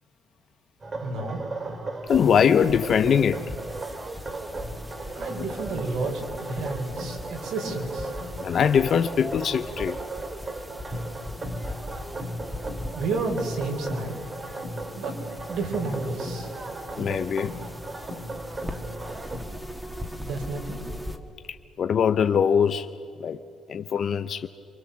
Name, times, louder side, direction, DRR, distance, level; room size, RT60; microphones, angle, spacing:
sound 1, 0.8-19.4, right 2 dB, 25° right, 2.4 m, -36 dB
voice 1, 1.0-1.4 5.2-8.1 12.9-14.1 14.9-15.2 15.5-16.5 20.2-20.8, right 3 dB, 80° right, 1 dB, 4.8 m, -31 dB
voice 2, 2.1-3.4 8.4-10.0 17.0-17.5 21.5-22.9 23.2-23.4 23.7-24.5, left 7 dB, 45° left, 8 dB, 0.6 m, -22 dB
sound 2, 2.1-21.2, left 1 dB, 5° right, 1.4 m, -40 dB
28.5 x 24.5 x 7.2 m, 2.7 s
cardioid pair, 165°, 0 cm